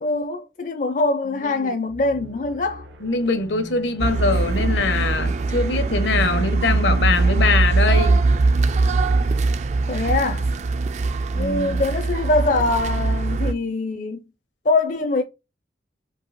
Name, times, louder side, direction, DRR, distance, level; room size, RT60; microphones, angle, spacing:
voice 1, 0.0-2.9 9.9-10.5 11.4-14.2 14.6-15.2, left 2 dB, 45° left, 0.4 m, -23 dB
voice 2, 1.4-1.7 3.0-8.2 11.3-11.8, left 3 dB, 80° left, 1.0 m, -23 dB
sound 1, 1.9-9.5, right 1 dB, 85° right, 1.2 m, -39 dB
sound 2, 4.0-13.5, right 3 dB, 40° right, 0.3 m, -21 dB
4.7 x 2.8 x 3.9 m
head